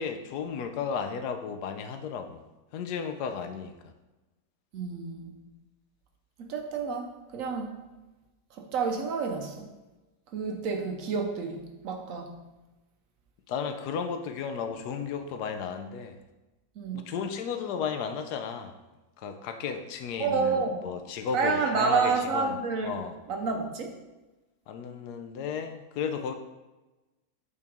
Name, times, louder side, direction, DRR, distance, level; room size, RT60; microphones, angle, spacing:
voice 1, 0.0-2.4 2.7-3.9 13.5-16.2 16.9-18.8 19.2-23.2 24.7-26.3, left 6 dB, 80° left, 7 dB, 1.1 m, -34 dB
voice 2, 4.7-5.3 6.4-7.7 8.7-9.7 10.3-12.4 16.8-17.1 20.2-20.8 21.3-23.0 23.3-23.9, right 5 dB, 65° right, 3 dB, 1.0 m, -29 dB
8.4 x 3.4 x 3.5 m, 1.1 s
omnidirectional pair, 1.7 m